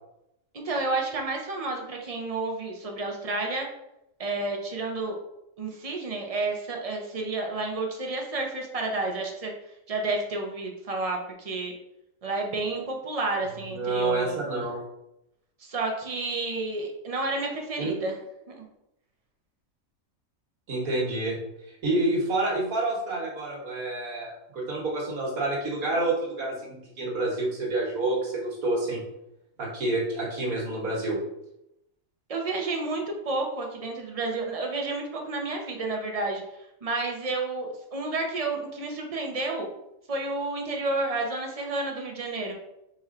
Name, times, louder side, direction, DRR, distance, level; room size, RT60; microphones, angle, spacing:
voice 1, 0.5-3.7 4.2-5.2 5.6-9.5 9.9-11.7 12.2-14.3 15.6-18.1 18.5-18.7 32.3-36.4 36.8-39.7 40.1-42.5, right 3 dB, 40° right, 1 dB, 0.6 m, -30 dB
voice 2, 13.6-14.8 17.8-17.9 20.7-21.4 21.8-29.0 29.6-31.2, right 2 dB, 85° right, -3 dB, 1.6 m, -28 dB
4.4 x 4.3 x 2.4 m, 0.83 s
omnidirectional pair, 1.5 m